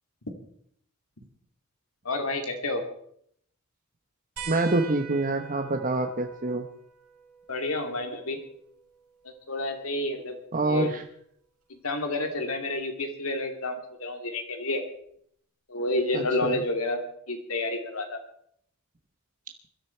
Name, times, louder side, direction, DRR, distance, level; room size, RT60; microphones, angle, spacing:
voice 1, 2.0-2.8 7.5-8.4 9.2-10.4 10.6-10.9 11.7-14.8 15.7-18.2, left 2 dB, 70° left, 5 dB, 2.7 m, -30 dB
sound 1, 4.4-9.4 11.0-11.1 12.7-12.8, right 6 dB, 90° right, 5.8 m, -45 dB
voice 2, 4.5-6.7 10.5-11.0 16.1-16.6, right 2 dB, 40° right, 5 dB, 1.1 m, -26 dB
22.0 x 12.5 x 4.6 m, 0.68 s
head